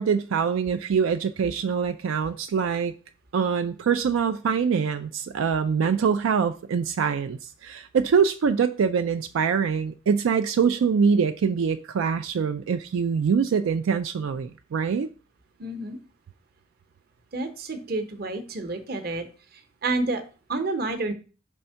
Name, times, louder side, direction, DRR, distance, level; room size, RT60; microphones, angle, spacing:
voice 1, 0.0-2.9 3.3-15.1, right 6 dB, 85° right, 0.4 m, -24 dB
voice 2, 15.6-16.0 17.3-19.3 19.8-20.2 20.5-21.1, right 2 dB, 50° right, 0.8 m, -29 dB
5.3 x 3.5 x 5.5 m
head